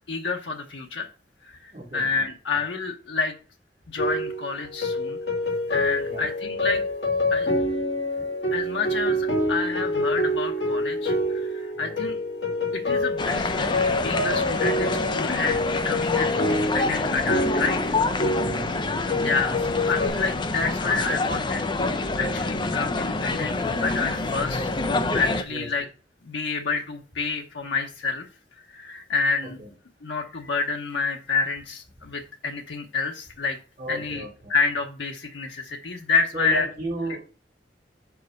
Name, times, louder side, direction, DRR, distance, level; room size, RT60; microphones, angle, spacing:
voice 1, 0.1-1.1 1.4-3.3 3.9-5.2 5.7-6.8 7.3-7.5 8.5-12.2 12.7-17.9 19.2-23.5 23.8-24.7 25.1-25.9 26.2-28.3 28.7-29.6 30.0-33.6 33.9-34.2 34.5-36.7, left 4 dB, 90° left, 2 dB, 0.9 m, -28 dB
voice 2, 1.7-2.3 6.0-6.3 11.8-11.9 18.4-18.9 25.5-25.7 29.6-29.7 33.8-34.5 36.3-37.2, right 2 dB, 35° right, -2 dB, 3.0 m, -34 dB
sound 1, 4.0-20.1, left 1 dB, 65° left, 1.8 m, -27 dB
sound 2, 13.2-25.4, left 3 dB, 25° left, 0.5 m, -27 dB
5.3 x 4.8 x 6.3 m, 0.37 s
head